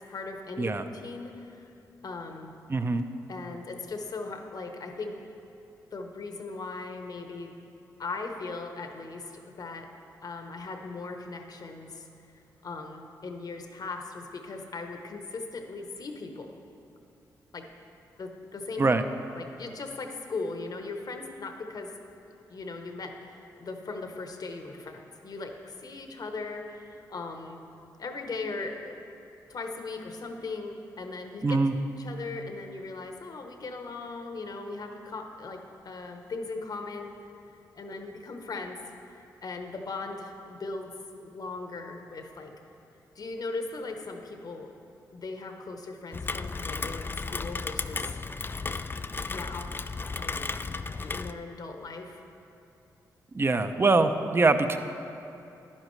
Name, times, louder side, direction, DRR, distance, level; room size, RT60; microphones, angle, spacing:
voice 1, 0.0-1.7 2.0-2.5 3.3-5.2 5.9-7.5 8.0-9.9 10.2-12.1 12.6-16.5 17.5-17.7 18.2-18.9 19.4-21.9 22.5-27.6 28.0-29.0 29.5-31.6 32.0-37.1 37.7-38.8 39.4-40.9 41.2-42.5 43.1-44.7 45.1-48.1 49.3-49.7 50.2-50.5 51.0-52.2 53.5-53.7, left 3 dB, 55° left, 4 dB, 1.0 m, -38 dB
voice 2, 2.7-3.0 18.8-19.0 31.4-31.8 53.3-54.8, right 3 dB, 30° right, 9 dB, 0.6 m, -23 dB
Rain, 46.1-51.3, left 4 dB, 30° left, 0.3 m, -34 dB
10.5 x 9.8 x 3.2 m, 2.8 s
supercardioid pair, 50°, 8 cm